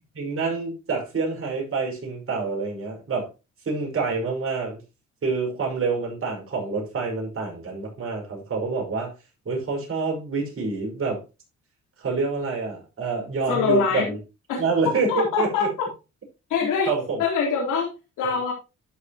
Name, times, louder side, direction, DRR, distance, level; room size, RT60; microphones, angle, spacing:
voice 1, 0.1-3.3 3.6-4.8 5.2-9.1 9.5-11.2 12.0-14.2 14.6-15.7 16.6-17.2, right 4 dB, 45° right, 5.5 m, -27 dB
voice 2, 13.5-14.1 14.5-14.6 15.1-15.6 16.5-16.9 17.2-17.9 18.2-18.5, left 6 dB, 85° left, 3.9 m, -23 dB
13.0 x 6.2 x 3.0 m
cardioid pair, 90°, 30 cm